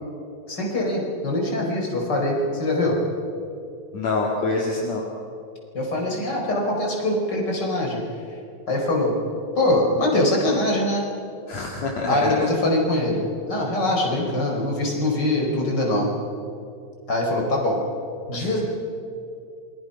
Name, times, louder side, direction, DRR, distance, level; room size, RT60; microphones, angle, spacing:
voice 1, 0.5-3.0 5.7-8.0 8.7-9.1 9.6-11.0 12.1-16.1 17.1-17.8 18.3-18.6, left 1 dB, 35° left, -1 dB, 5.5 m, -23 dB
voice 2, 3.9-5.0 11.5-12.4 18.3-18.5, left 3 dB, 60° left, -2 dB, 3.3 m, -26 dB
28.0 x 23.0 x 5.7 m, 2.5 s
omnidirectional pair, 3.4 m